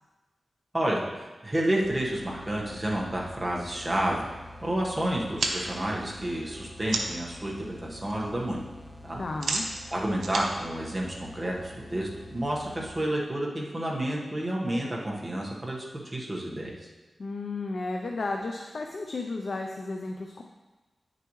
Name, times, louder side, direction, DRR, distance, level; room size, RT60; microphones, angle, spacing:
voice 1, 1.4-4.3 4.6-8.6 9.0-9.2 9.9-16.9, right 1 dB, 20° right, -3 dB, 1.4 m, -30 dB
sound 1, 1.8-13.2, left 1 dB, 5° left, 0.8 m, -47 dB
sound 2, 5.4-7.3 7.7-8.1 8.4-11.7, right 3 dB, 85° right, 0.8 m, -34 dB
voice 2, 9.2-9.7 17.2-20.4, left 3 dB, 55° left, 2 dB, 0.6 m, -33 dB
9.6 x 6.8 x 3.2 m, 1.2 s
wide cardioid pair, 120°, 0 cm